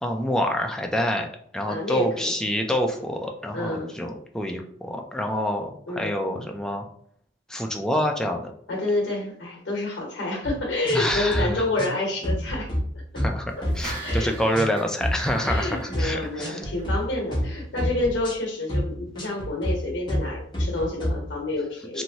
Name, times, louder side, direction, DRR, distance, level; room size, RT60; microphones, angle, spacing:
voice 1, 0.0-1.3 1.5-6.8 7.5-8.5 10.9-11.6 13.2-16.7 21.9-22.0, left 1 dB, 5° left, 2 dB, 0.3 m, -27 dB
voice 2, 1.7-2.3 3.5-3.9 5.9-6.1 8.7-12.7 13.1-13.2 13.6-13.7 14.0-14.3 15.4-22.0, left 2 dB, 85° left, -1 dB, 0.9 m, -28 dB
sound 1, 10.4-10.6 10.8-11.4 11.8-12.0 12.2-12.8 13.2-13.3 13.6-14.2 14.5-14.7 15.0-15.6 15.9-16.1 16.4-17.0 17.3-17.5 17.8-18.3 18.7-18.9 19.2-19.7 20.1-20.3 20.5-21.1, equal, 25° left, 0.9 m, -27 dB
sound 2, 13.5-17.0 17.3-17.4, right 2 dB, 20° right, 1.1 m, -40 dB
3.0 x 2.6 x 2.7 m, 0.64 s
head